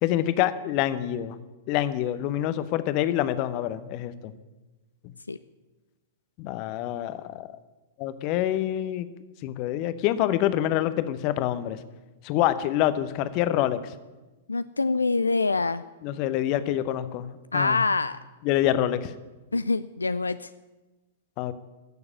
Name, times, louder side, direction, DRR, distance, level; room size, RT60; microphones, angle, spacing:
voice 1, 0.0-1.4 1.7-4.3 5.0-5.1 6.4-7.5 8.0-9.1 9.4-11.8 12.2-13.8 16.0-17.8 18.4-19.1 21.4-21.5, left 12 dB, 40° left, 13 dB, 0.9 m, -26 dB
voice 2, 14.5-15.8 17.5-18.2 19.5-20.5, left 3 dB, 80° left, 14 dB, 0.4 m, -25 dB
15.0 x 7.0 x 9.6 m, 1.1 s
figure-of-eight pair, 105°, 0 cm